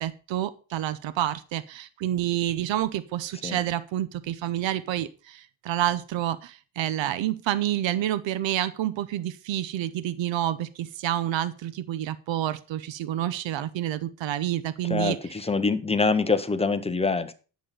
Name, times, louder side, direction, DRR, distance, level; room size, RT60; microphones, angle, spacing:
voice 1, 0.0-15.2, right 12 dB, 80° right, 15 dB, 0.8 m, -28 dB
voice 2, 14.9-17.3, left 4 dB, 15° left, 9 dB, 0.7 m, -25 dB
10.5 x 7.1 x 5.6 m, 0.35 s
cardioid pair, 165°, 45 cm